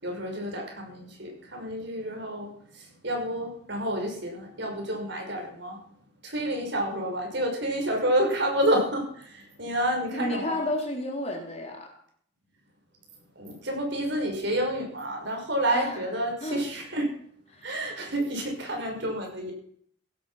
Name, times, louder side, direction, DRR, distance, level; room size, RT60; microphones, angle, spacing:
voice 1, 0.0-5.8 6.2-10.6 13.4-17.1 17.6-19.5, right 1 dB, 55° right, 1 dB, 5.9 m, -29 dB
voice 2, 10.1-11.9 15.7-16.1 16.4-16.6 17.5-17.9, left 1 dB, 30° left, 1 dB, 3.6 m, -32 dB
16.5 x 12.0 x 5.9 m, 0.63 s
head